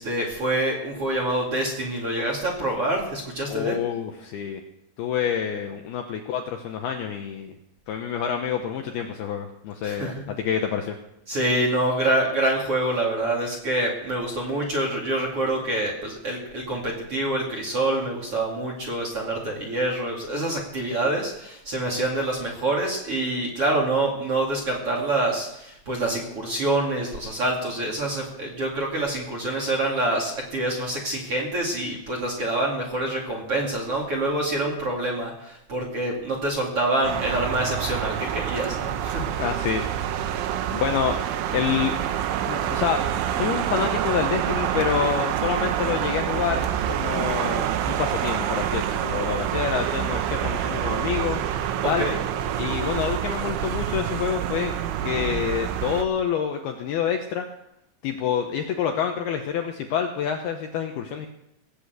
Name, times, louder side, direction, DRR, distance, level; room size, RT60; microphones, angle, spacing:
voice 1, 0.0-3.8 9.8-10.3 11.3-39.2 52.0-52.2, right 1 dB, 40° right, -1 dB, 2.5 m, -26 dB
voice 2, 3.5-4.6 5.0-7.6 7.9-11.0 39.4-39.9 40.1-40.2 40.7-41.2 41.5-42.0 42.4-51.4 51.8-52.1 52.6-54.8 55.0-57.5 58.0-61.3, left 8 dB, 75° left, 4 dB, 2.4 m, -27 dB
sound 1, 37.0-56.0, right 10 dB, 90° right, 3.4 m, -27 dB
18.0 x 8.5 x 8.0 m, 0.81 s
omnidirectional pair, 5.5 m